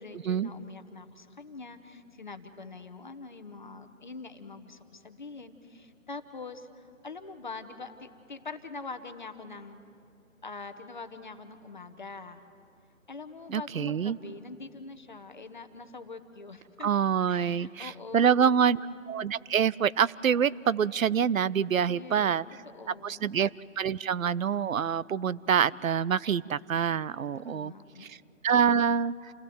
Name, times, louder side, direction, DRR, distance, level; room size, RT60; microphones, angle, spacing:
voice 1, 0.0-9.8 10.4-12.4 13.1-16.9 17.3-18.8 21.8-22.4 22.7-23.4 27.4-28.1, left 4 dB, 35° left, 8 dB, 1.0 m, -44 dB
voice 2, 13.5-14.2 16.8-18.8 19.1-22.4 23.0-23.5 23.8-27.7 28.0-28.2 28.4-29.3, right 7 dB, 80° right, 19 dB, 0.6 m, -26 dB
28.5 x 17.0 x 7.8 m, 2.5 s
figure-of-eight pair, 165°, 40 cm